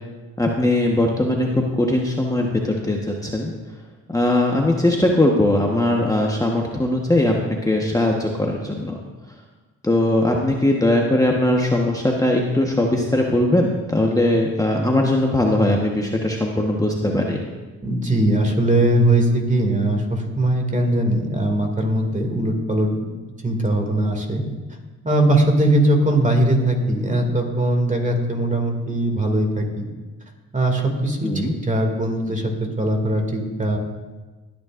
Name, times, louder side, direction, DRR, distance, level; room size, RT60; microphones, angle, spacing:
voice 1, 0.4-3.5 4.1-9.0 9.8-17.4 31.2-31.5, left 1 dB, 10° left, 0 dB, 1.2 m, -20 dB
voice 2, 17.8-23.1 23.4-24.4 25.0-29.9 30.5-33.8, right 1 dB, 25° right, 3 dB, 2.4 m, -20 dB
18.5 x 9.6 x 2.6 m, 1.3 s
cardioid pair, 65°, 31 cm